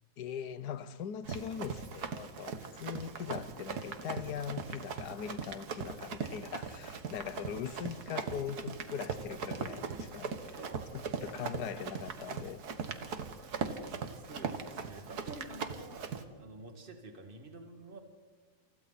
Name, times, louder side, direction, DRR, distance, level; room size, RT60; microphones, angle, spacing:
voice 1, 0.2-10.6 10.9-12.6, left 8 dB, 85° left, 1.4 m, -41 dB
Run, 1.2-16.2, right 5 dB, 75° right, 1.9 m, -40 dB
voice 2, 10.6-11.0 11.2-11.7 12.8-13.3 13.6-16.1 16.4-18.0, right 2 dB, 35° right, 2.4 m, -50 dB
29.0 x 28.5 x 4.2 m
omnidirectional pair, 1.7 m